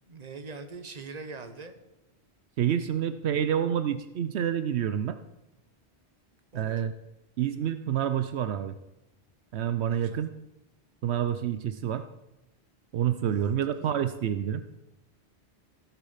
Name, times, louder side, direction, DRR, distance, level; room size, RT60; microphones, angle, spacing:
voice 1, 0.1-1.8 6.5-6.8 9.9-10.3 13.3-13.9, right 4 dB, 40° right, 8 dB, 1.2 m, -43 dB
voice 2, 2.6-5.2 6.5-6.9 7.4-8.7 9.5-10.3 11.0-12.1 12.9-14.6, right 9 dB, 80° right, 11 dB, 0.9 m, -28 dB
15.0 x 7.3 x 5.6 m, 0.94 s
omnidirectional pair, 1.1 m